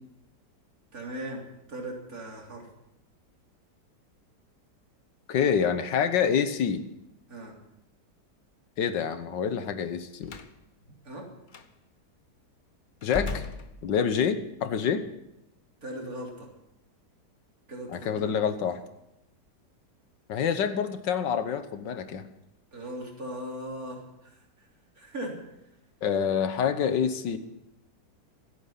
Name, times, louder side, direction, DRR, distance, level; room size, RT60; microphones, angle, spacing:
voice 1, 0.9-1.4 1.7-2.7 7.3-7.5 11.0-11.2 15.8-16.5 17.7-18.2 18.6-18.8 22.7-24.4 25.0-25.4, right 1 dB, 55° right, -1 dB, 3.8 m, -38 dB
voice 2, 5.3-6.8 8.8-10.4 13.0-13.4 13.8-15.0 17.9-18.8 20.3-22.3 26.0-27.4, left 7 dB, 85° left, 10 dB, 1.7 m, -27 dB
Slam, 10.2-10.6 11.5-11.7 13.0-14.3, left 3 dB, 40° left, 0.8 m, -37 dB
26.0 x 8.8 x 5.7 m, 0.86 s
omnidirectional pair, 1.9 m